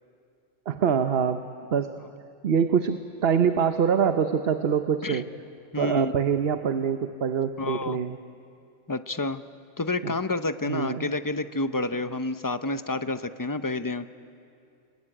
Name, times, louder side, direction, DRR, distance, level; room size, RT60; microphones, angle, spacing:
voice 1, 0.7-1.4 1.7-1.9 2.4-5.3 5.8-8.2 10.0-10.1 10.6-11.1, right 7 dB, 60° right, 9 dB, 1.0 m, -24 dB
voice 2, 5.7-6.1 7.6-8.0 8.9-9.4 9.8-14.1, left 2 dB, 20° left, 11 dB, 0.6 m, -29 dB
29.0 x 20.5 x 9.9 m, 2.5 s
omnidirectional pair, 1.2 m